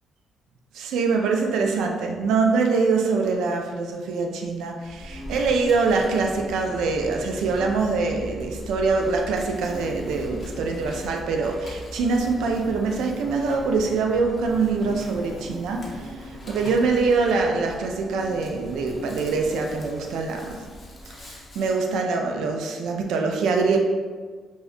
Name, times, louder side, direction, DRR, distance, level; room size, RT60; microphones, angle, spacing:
voice 1, 0.7-20.6 21.2-23.8, right 4 dB, 85° right, 2 dB, 0.3 m, -24 dB
Insect, 4.8-21.8, left 1 dB, 45° left, 0.5 m, -39 dB
2.6 x 2.2 x 2.3 m, 1.5 s
cardioid pair, 90°, 0 cm